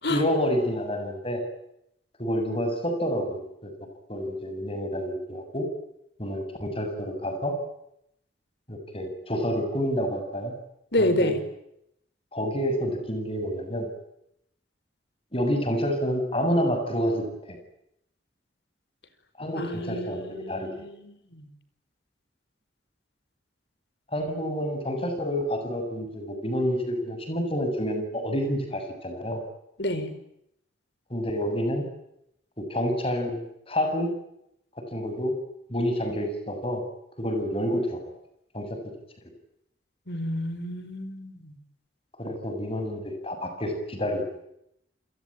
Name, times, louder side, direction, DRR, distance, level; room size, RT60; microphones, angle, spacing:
voice 1, 0.1-1.4 2.2-3.7 4.1-5.7 6.2-7.5 8.7-10.5 11.0-11.3 12.3-13.9 15.3-17.6 19.4-20.7 24.1-29.4 31.1-31.9 32.6-34.1 34.9-35.4 35.7-36.8 37.2-38.0 38.5-38.8 42.2-44.2, equal, 30° left, 6 dB, 7.5 m, -28 dB
voice 2, 10.9-11.4 19.5-21.5 29.8-30.1 40.1-41.5, left 1 dB, 65° left, 12 dB, 4.9 m, -29 dB
29.5 x 22.5 x 8.7 m, 0.79 s
head